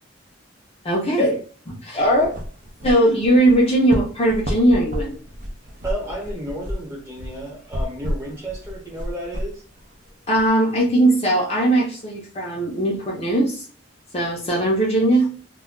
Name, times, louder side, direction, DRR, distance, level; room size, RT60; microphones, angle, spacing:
voice 1, 0.8-1.4 1.7-2.4 2.8-5.2 10.3-13.7 14.1-15.3, right 1 dB, 30° left, -3 dB, 0.6 m, -19 dB
sound 1, 2.0-10.5, equal, 45° right, 0.6 m, -32 dB
voice 2, 5.8-9.6, right 1 dB, 15° right, -2 dB, 1.0 m, -32 dB
2.2 x 2.2 x 3.7 m, 0.43 s
head